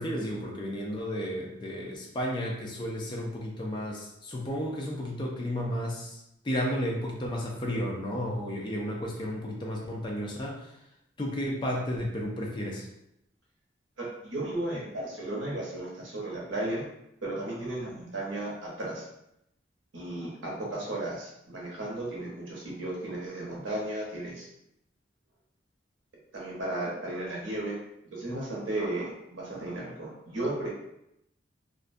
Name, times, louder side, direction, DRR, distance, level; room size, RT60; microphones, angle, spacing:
voice 1, 0.0-10.8 11.2-12.9, equal, 25° left, -1 dB, 0.4 m, -33 dB
voice 2, 14.0-16.8 17.2-19.1 19.9-24.5 26.3-27.8 28.1-30.7, right 1 dB, 90° right, -3 dB, 0.8 m, -34 dB
2.4 x 2.1 x 2.5 m, 0.82 s
head